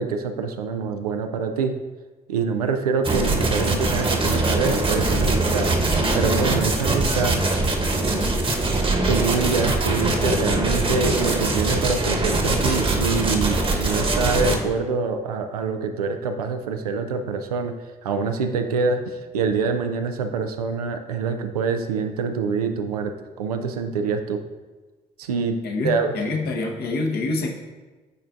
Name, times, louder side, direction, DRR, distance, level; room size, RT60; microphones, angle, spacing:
voice 1, 0.0-1.7 2.3-5.7 6.1-7.4 9.1-17.7 18.0-24.4 25.2-25.6 25.8-26.1, right 5 dB, 85° right, 6 dB, 0.4 m, -25 dB
sound 1, 3.0-14.6, right 2 dB, 30° right, 1.1 m, -22 dB
voice 2, 25.6-27.5, left 3 dB, 55° left, 1 dB, 1.1 m, -26 dB
10.5 x 4.3 x 2.5 m, 1.3 s
figure-of-eight pair, 40°, 19 cm